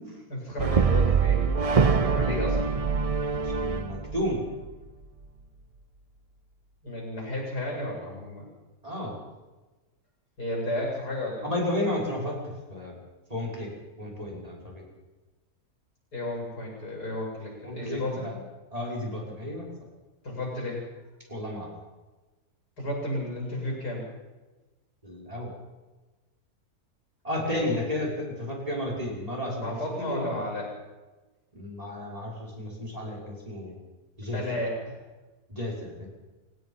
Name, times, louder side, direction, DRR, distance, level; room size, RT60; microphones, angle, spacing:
voice 1, 0.3-2.6 6.8-8.5 10.4-11.5 16.1-18.3 20.2-20.9 22.8-24.1 27.4-27.9 29.6-30.7 34.3-35.0, left 1 dB, 80° left, -2 dB, 8.6 m, -33 dB
Brass instrument, 0.6-4.9, right 5 dB, 50° right, 0.4 m, -24 dB
voice 2, 3.3-4.4 8.8-9.1 11.4-12.4 12.7-12.9 13.3-13.7 14.0-14.8 17.6-18.3 18.7-19.7 21.3-21.7 25.0-25.5 27.2-29.8 30.1-30.3 31.5-33.8 34.2-34.4 35.5-36.1, left 1 dB, 20° right, -2 dB, 6.0 m, -32 dB
28.0 x 17.0 x 5.7 m, 1.2 s
omnidirectional pair, 1.7 m